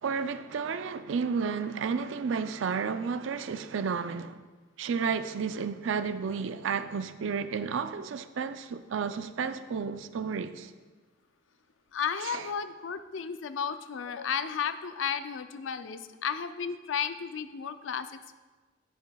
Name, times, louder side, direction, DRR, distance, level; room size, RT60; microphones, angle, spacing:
voice 1, 0.0-4.4 4.8-10.7 12.2-12.5, right 5 dB, 85° right, 0.4 m, -32 dB
voice 2, 11.9-18.3, left 7 dB, 85° left, 0.4 m, -33 dB
10.0 x 8.8 x 2.3 m
head